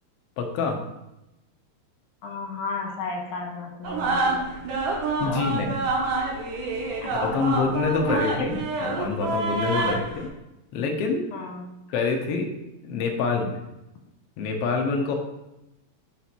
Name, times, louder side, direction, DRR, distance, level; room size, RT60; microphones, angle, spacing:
voice 1, 0.4-0.8 5.2-5.9 7.1-10.3 10.7-11.3 11.9-12.5 12.8-13.6 14.4-15.1, left 4 dB, 85° left, 3 dB, 1.3 m, -26 dB
voice 2, 2.2-4.5 5.3-5.5 7.0-7.1 7.5-7.6 8.0-8.5 9.7-10.0 11.3-11.7, left 3 dB, 70° left, 1 dB, 2.6 m, -33 dB
sound 1, 3.8-10.3, right 3 dB, 75° right, 2.6 m, -27 dB
5.6 x 4.2 x 6.0 m, 0.94 s
omnidirectional pair, 3.8 m